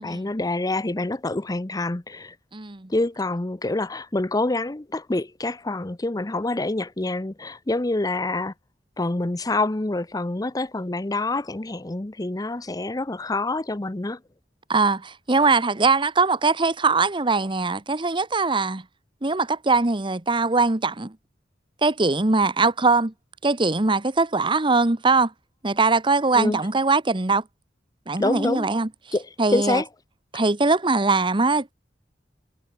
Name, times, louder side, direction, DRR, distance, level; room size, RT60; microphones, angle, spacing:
voice 1, 0.0-2.3 2.9-8.5 9.0-14.2 26.4-26.6 28.2-28.7 29.1-29.2 29.5-29.9, left 2 dB, 20° left, 0.7 m, -26 dB
voice 2, 2.5-2.9 14.7-18.8 19.2-21.2 21.8-23.1 23.4-25.3 25.6-27.4 28.1-28.9 29.4-29.8 30.3-31.7, right 3 dB, 30° right, 1.1 m, -21 dB
head